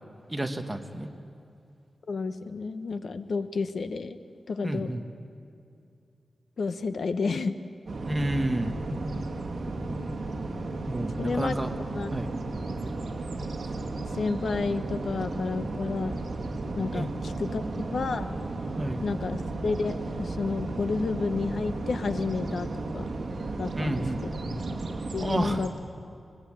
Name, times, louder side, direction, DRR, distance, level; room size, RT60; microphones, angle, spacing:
voice 1, 0.3-1.1 4.6-5.0 8.0-8.8 10.9-11.7 12.1-12.3 16.9-17.1 18.8-19.0 23.8-24.2 25.2-25.6, right 1 dB, 15° right, 5 dB, 1.3 m, -30 dB
voice 2, 2.1-4.2 4.5-4.9 6.6-7.6 11.2-11.5 11.9-12.1 14.1-16.2 16.8-17.6 17.9-18.3 19.0-22.7 22.9-23.1 23.6-24.3 25.1-25.7, left 4 dB, 65° left, 10 dB, 0.9 m, -30 dB
sound 1, 7.9-25.7, right 2 dB, 60° right, 2.0 m, -34 dB
24.5 x 20.0 x 8.7 m, 2.5 s
wide cardioid pair, 135°, 0 cm